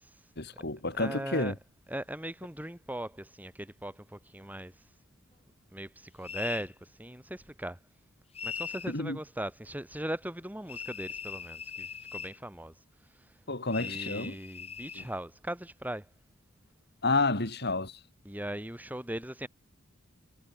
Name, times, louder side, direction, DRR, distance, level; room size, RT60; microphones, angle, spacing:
voice 1, 0.4-1.5 8.9-9.2 13.5-14.4 14.9-15.1 17.0-18.0, left 3 dB, 50° left, 4.8 m, -30 dB
voice 2, 0.9-1.5 1.9-4.7 5.7-7.8 8.4-12.7 13.8-16.1 18.2-19.5, right 1 dB, 10° right, 2.4 m, -39 dB
sound 1, 6.2-6.7 8.3-8.9 10.7-12.4 13.7-15.1, left 7 dB, 30° left, 4.3 m, -40 dB
head